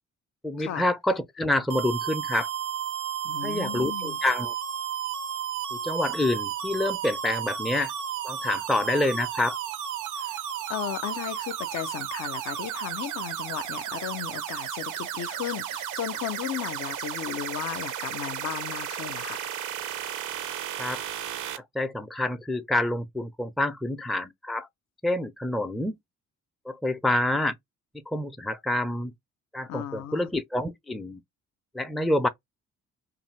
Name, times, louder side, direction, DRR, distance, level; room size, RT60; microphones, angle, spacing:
voice 1, 0.4-2.5 3.4-4.5 5.7-7.9 8.2-9.6 20.8-21.0 21.7-24.7 25.0-25.9 26.7-27.5 27.9-29.1 29.5-31.2 31.7-32.3, left 1 dB, ahead, 0.4 m, -27 dB
sound 1, 1.7-21.6, right 9 dB, 80° right, 0.7 m, -33 dB
voice 2, 3.2-4.2 10.2-10.4 10.7-19.4 29.7-30.3, left 11 dB, 60° left, 0.5 m, -35 dB
2.7 x 2.5 x 3.0 m
cardioid pair, 90°, 30 cm